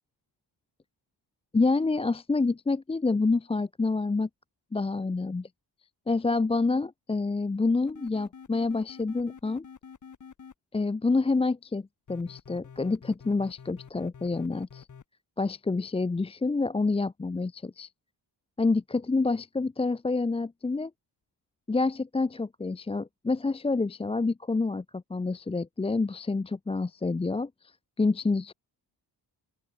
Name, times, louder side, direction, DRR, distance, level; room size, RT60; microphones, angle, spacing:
voice 1, 1.5-4.3 4.7-5.5 6.1-9.6 10.7-14.9 15.4-17.9 18.6-20.9 21.7-28.5, left 3 dB, 15° left, 0.6 m, -28 dB
sound 1, 7.9-10.5 12.1-15.0, left 6 dB, 40° left, 5.0 m, -48 dB
open air
wide cardioid pair, 150°, 44 cm